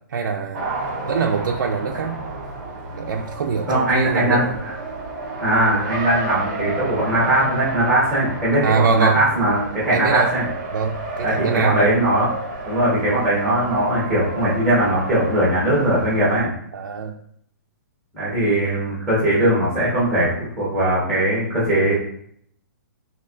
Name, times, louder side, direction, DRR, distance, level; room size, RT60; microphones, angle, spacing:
voice 1, 0.1-0.6 1.1-2.2 3.0-4.6 8.6-9.2 9.9-10.3 10.7-12.0 16.7-17.2, right 5 dB, 85° right, 1 dB, 0.4 m, -23 dB
Race car auto racing, 0.5-16.4, right 2 dB, 25° right, 0.7 m, -31 dB
voice 2, 3.7-4.4 5.4-10.5 11.2-12.3 12.6-16.5 18.1-21.9, right 1 dB, ahead, -9 dB, 1.0 m, -20 dB
4.2 x 2.7 x 2.5 m, 0.68 s
hypercardioid pair, 175°, 10 cm